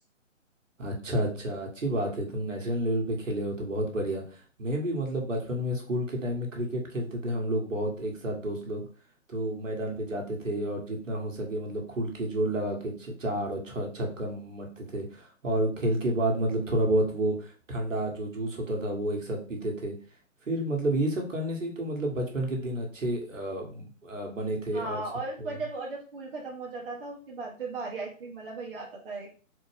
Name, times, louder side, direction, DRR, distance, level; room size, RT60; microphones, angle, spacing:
voice 1, 0.8-8.9 9.3-19.9 20.5-25.0, right 1 dB, 70° right, 0 dB, 1.5 m, -30 dB
voice 2, 24.7-29.3, right 3 dB, 45° right, -2 dB, 0.8 m, -37 dB
4.1 x 2.1 x 3.3 m, 0.39 s
figure-of-eight pair, 145°, 39 cm